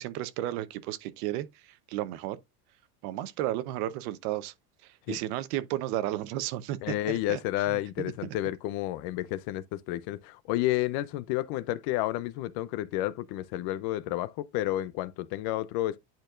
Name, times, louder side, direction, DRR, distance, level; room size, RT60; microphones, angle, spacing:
voice 1, 0.0-2.4 3.0-4.5 5.1-7.4 7.7-8.3, right 14 dB, 65° right, 0.9 m, -33 dB
voice 2, 6.8-16.0, left 15 dB, 50° left, 0.6 m, -31 dB
10.5 x 4.4 x 2.4 m
supercardioid pair, 140°, 49 cm